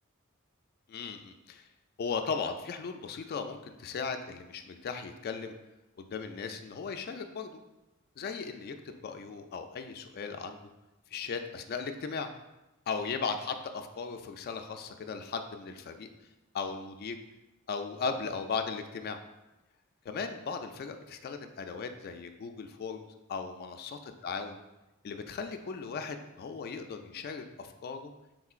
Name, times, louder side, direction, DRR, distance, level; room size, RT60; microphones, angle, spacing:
voice 1, 0.9-1.7 2.0-5.5 6.0-7.6 8.2-10.6 11.1-12.3 12.9-16.1 16.5-17.2 17.7-19.2 20.1-24.6 25.0-28.1, left 5 dB, 50° left, 7 dB, 0.3 m, -37 dB
4.6 x 3.7 x 2.4 m, 1.0 s
head